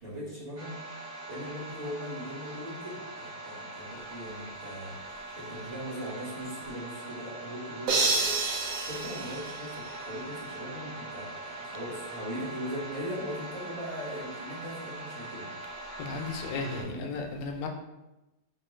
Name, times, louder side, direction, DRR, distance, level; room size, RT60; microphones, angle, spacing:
voice 1, 0.0-0.8 1.1-8.2 8.8-15.5 16.1-16.4 16.8-17.1, equal, 30° right, -8 dB, 1.5 m, -39 dB
sound 1, 0.6-16.8, right 2 dB, 50° right, 0.5 m, -42 dB
sound 2, 7.9-10.2, right 3 dB, 70° right, 1.2 m, -29 dB
voice 2, 16.0-17.7, left 3 dB, 75° left, 4 dB, 1.1 m, -35 dB
4.4 x 2.7 x 3.1 m, 0.99 s
omnidirectional pair, 2.1 m